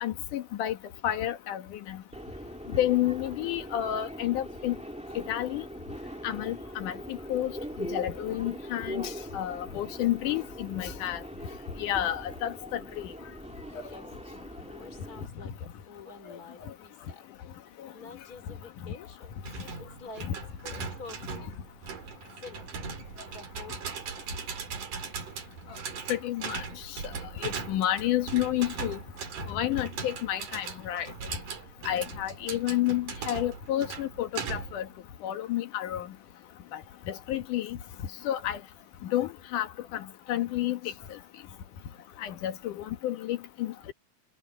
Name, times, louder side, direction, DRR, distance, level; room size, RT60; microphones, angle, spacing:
voice 1, 0.0-0.8 1.0-1.6 1.9-2.0 2.7-4.7 5.2-5.7 6.2-7.5 7.9-11.2 11.8-13.1 26.1-26.6 27.4-29.0 29.5-31.1 31.9-34.9 35.2-36.1 37.1-37.8 38.2-38.6 39.1-39.7 39.9-40.8 42.2-43.9, left 13 dB, 85° left, 2.9 m, -30 dB
Subway metro underground, 2.1-15.3, equal, 5° right, 1.7 m, -41 dB
voice 2, 13.7-17.3 17.9-19.4 19.8-20.3 20.6-21.5 22.4-22.7 23.3-24.6 29.7-29.8 32.0-32.2 41.9-42.0, left 4 dB, 30° left, 3.3 m, -48 dB
sound 1, 19.4-34.9, right 5 dB, 80° right, 4.6 m, -39 dB
omnidirectional pair, 3.5 m